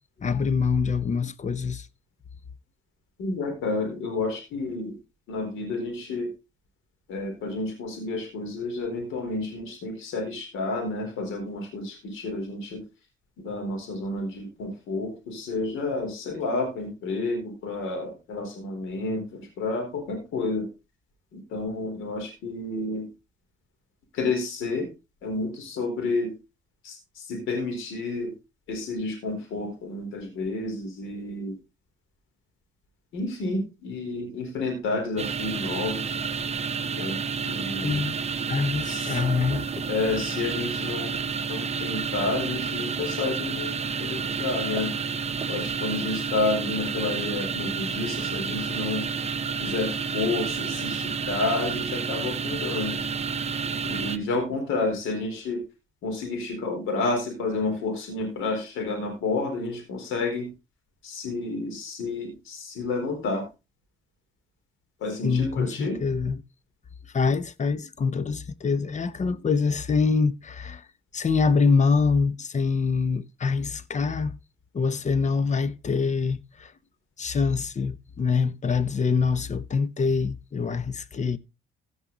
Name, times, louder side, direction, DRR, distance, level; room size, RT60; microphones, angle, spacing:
voice 1, 0.2-1.9 37.8-38.1 38.5-39.9 65.2-66.4 67.1-70.8 71.1-74.3 74.7-76.7 77.2-81.4, left 5 dB, 35° left, 0.9 m, -25 dB
voice 2, 3.2-5.0 5.3-6.3 7.1-12.8 13.4-20.7 21.3-23.1 24.1-24.9 25.2-26.3 26.8-28.3 28.7-31.6 33.1-36.2 36.9-38.0 38.9-39.2 39.9-44.9 45.5-49.0 49.6-53.0 53.8-55.6 56.0-60.5 61.0-63.4 65.0-66.0, left 3 dB, 90° left, 4.2 m, -30 dB
sound 1, 35.2-54.2, right 5 dB, 30° right, 1.0 m, -30 dB
16.0 x 5.5 x 4.0 m
cardioid pair, 90°, 20 cm